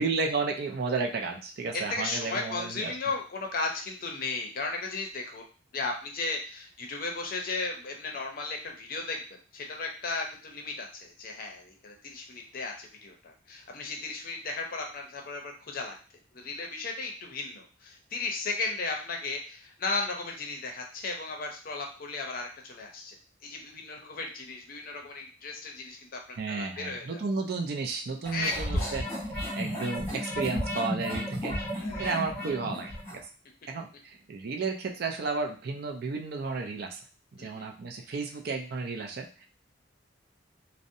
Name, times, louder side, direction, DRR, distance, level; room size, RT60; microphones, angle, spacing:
voice 1, 0.0-2.9 26.4-29.1 29.5-33.2 33.7-37.0 37.4-39.4, right 4 dB, 55° right, 3 dB, 0.4 m, -33 dB
voice 2, 1.7-5.4 5.7-9.2 9.5-16.0 16.3-23.2 23.4-27.2 28.3-29.0 31.8-32.3 37.4-37.7, left 3 dB, 50° left, 2 dB, 0.5 m, -35 dB
sound 1, 28.2-33.2, equal, 10° left, 1.1 m, -33 dB
2.6 x 2.0 x 2.6 m, 0.37 s
head